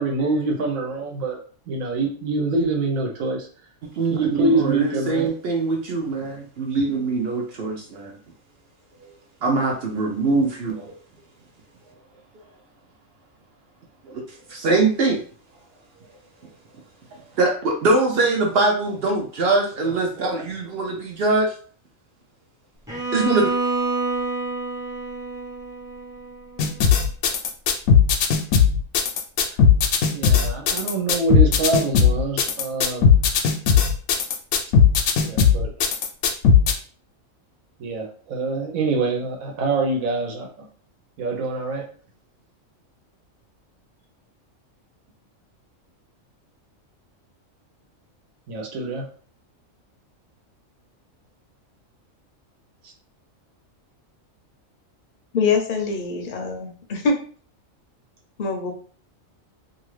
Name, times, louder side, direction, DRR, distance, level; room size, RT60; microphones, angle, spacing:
voice 1, 0.0-1.4 1.7-3.5 4.1-5.3 19.8-20.3 29.5-29.6 30.1-33.1 35.2-35.7 37.8-40.7 41.2-41.8 48.5-49.1, right 3 dB, 85° right, 1 dB, 1.2 m, -25 dB
voice 2, 3.8-8.1 9.4-10.9 14.1-14.2 14.5-15.2 17.4-21.5 23.1-23.5, right 3 dB, 60° right, 1 dB, 0.7 m, -22 dB
Bowed string instrument, 22.9-26.9, right 3 dB, 5° right, 0.6 m, -28 dB
sound 1, 26.6-36.7, left 7 dB, 75° left, 0.9 m, -17 dB
voice 3, 55.3-57.2 58.4-58.7, left 4 dB, 55° left, 2 dB, 0.6 m, -24 dB
2.7 x 2.5 x 3.1 m, 0.43 s
omnidirectional pair, 1.4 m